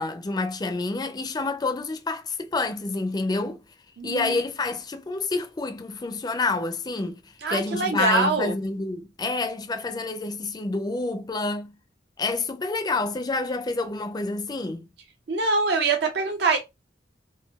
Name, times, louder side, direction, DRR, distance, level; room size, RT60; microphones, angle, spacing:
voice 1, 0.0-3.6 4.0-7.2 7.5-11.8 12.2-14.9, left 3 dB, 20° left, 0.4 m, -28 dB
voice 2, 4.0-4.4 7.4-8.5 15.3-16.6, right 3 dB, 65° right, 0.5 m, -24 dB
3.9 x 2.2 x 2.3 m
head